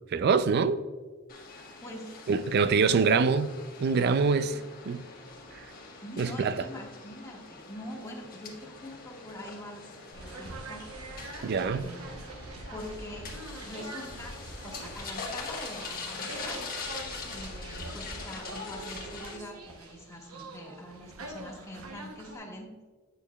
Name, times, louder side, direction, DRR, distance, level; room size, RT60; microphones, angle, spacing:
voice 1, 0.1-0.8 2.3-3.5 3.8-4.6 4.9-5.0 5.5-5.6 6.2-6.6 11.4-11.9, right 5 dB, 50° right, 0.4 m, -25 dB
sound 1, 1.3-19.4, left 4 dB, 45° left, 1.2 m, -43 dB
voice 2, 1.8-2.1 2.7-2.8 6.0-10.8 11.6-12.1 12.7-13.3 13.6-14.3 14.6-16.6 17.3-22.7, left 1 dB, 15° left, 1.3 m, -44 dB
sound 2, 10.1-22.4, right 1 dB, 90° right, 0.9 m, -44 dB
8.7 x 6.7 x 2.3 m
head